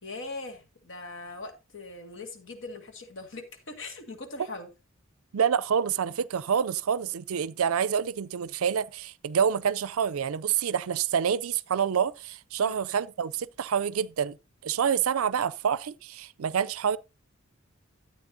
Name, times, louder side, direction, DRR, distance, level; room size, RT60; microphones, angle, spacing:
voice 1, 0.0-4.7 12.6-12.8, left 3 dB, 60° left, 2.0 m, -41 dB
voice 2, 5.3-14.4 14.6-17.0, right 7 dB, 85° right, 0.4 m, -27 dB
13.0 x 8.7 x 2.7 m
head